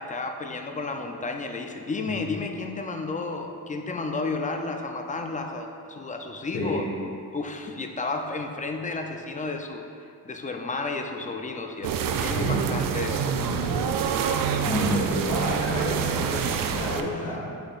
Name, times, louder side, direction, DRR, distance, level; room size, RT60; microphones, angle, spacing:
voice 1, 0.0-6.8 7.3-9.8 10.3-13.3 16.3-16.6 17.0-17.4, left 3 dB, 20° left, 4 dB, 0.4 m, -32 dB
voice 2, 6.5-6.8 12.4-12.7 13.3-13.8 14.6-17.5, left 1 dB, 55° left, -9 dB, 1.5 m, -30 dB
sound 1, 11.8-17.0, right 7 dB, 70° right, 0.5 m, -26 dB
7.9 x 6.6 x 2.4 m, 2.5 s
wide cardioid pair, 135°, 36 cm